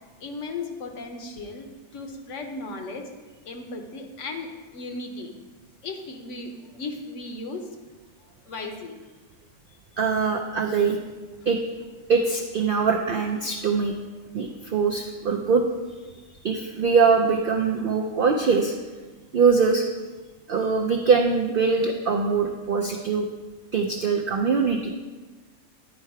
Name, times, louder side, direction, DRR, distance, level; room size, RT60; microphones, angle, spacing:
voice 1, 0.2-3.1 3.4-5.3 5.8-7.6 8.5-8.9, left 3 dB, 60° left, 4 dB, 1.1 m, -36 dB
voice 2, 10.0-11.0 11.5-11.6 12.1-13.9 14.3-15.6 16.4-18.7 19.3-19.8 20.5-23.3 23.7-24.9, right 5 dB, 65° right, 2 dB, 0.5 m, -22 dB
10.0 x 4.4 x 4.7 m, 1.3 s
omnidirectional pair, 1.5 m